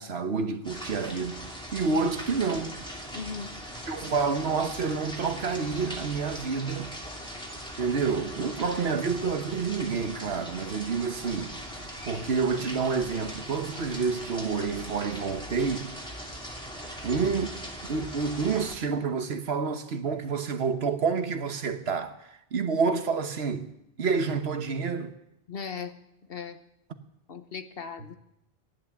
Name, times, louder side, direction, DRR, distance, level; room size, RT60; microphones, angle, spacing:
voice 1, 0.0-2.8 3.9-6.9 7.8-11.5 12.0-15.9 17.0-17.5 17.8-25.1, right 5 dB, 85° right, 1.4 m, -29 dB
sound 1, 0.6-18.8, equal, 5° left, 2.7 m, -40 dB
voice 2, 3.1-3.5 25.5-25.9 26.3-26.6 27.3-28.2, left 5 dB, 65° left, 1.3 m, -37 dB
15.5 x 10.5 x 7.1 m
omnidirectional pair, 1.0 m